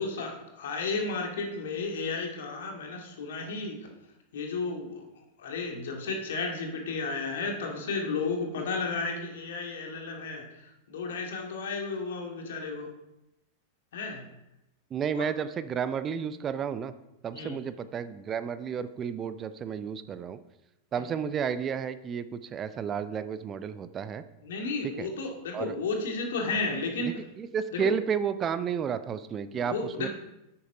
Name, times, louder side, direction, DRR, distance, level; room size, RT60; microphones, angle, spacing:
voice 1, 0.0-3.8 4.3-5.0 5.4-12.9 13.9-14.2 15.1-15.3 17.3-17.6 24.4-27.2 27.7-27.9 29.5-30.1, left 3 dB, 60° left, 2 dB, 2.2 m, -33 dB
voice 2, 14.9-16.9 17.2-20.4 20.9-24.2 24.8-25.1 25.5-25.8 27.1-30.1, right 7 dB, 25° right, 13 dB, 0.5 m, -32 dB
9.4 x 8.7 x 4.9 m, 0.92 s
figure-of-eight pair, 90°, 0 cm